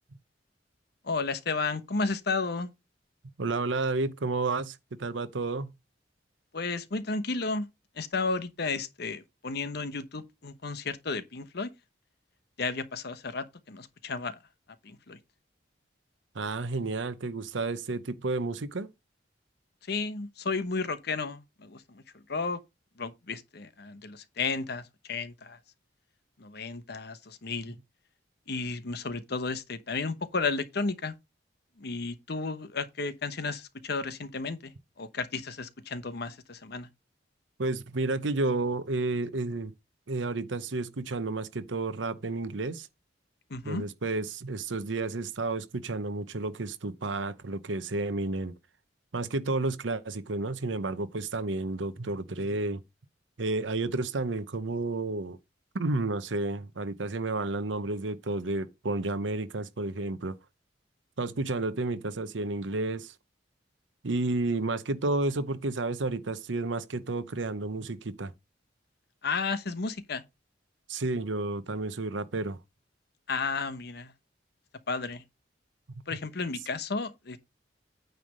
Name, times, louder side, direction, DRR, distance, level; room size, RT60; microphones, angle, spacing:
voice 1, 1.0-2.7 6.5-7.7 8.0-11.7 12.6-14.4 14.8-15.2 19.9-22.6 23.0-25.6 26.4-27.8 28.5-31.1 31.8-36.9 43.5-43.8 69.2-70.2 73.3-74.1 74.9-75.2 76.1-77.4, left 4 dB, 60° left, 1.0 m, -33 dB
voice 2, 3.4-5.7 16.3-18.9 37.6-39.7 40.1-42.9 43.6-48.5 49.1-52.8 53.4-55.4 55.7-60.4 61.2-63.1 64.0-68.3 70.9-72.6 75.9-76.2, right 2 dB, 90° right, 0.8 m, -31 dB
9.1 x 3.4 x 6.5 m
head